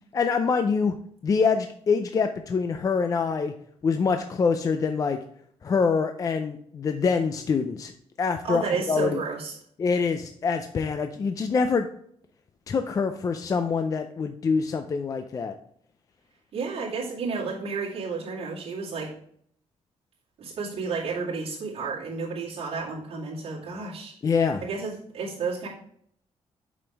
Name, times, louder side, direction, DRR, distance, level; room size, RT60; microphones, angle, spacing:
voice 1, 0.1-1.0 1.2-3.5 3.8-5.2 5.6-7.9 8.2-9.2 9.8-11.9 12.7-15.5 24.2-24.6, left 5 dB, 30° left, 7 dB, 0.4 m, -25 dB
voice 2, 8.4-9.6 16.5-19.1 20.4-24.1 24.6-25.7, right 4 dB, 60° right, -6 dB, 2.2 m, -31 dB
6.9 x 5.2 x 3.4 m, 0.64 s
cardioid pair, 150°, 11 cm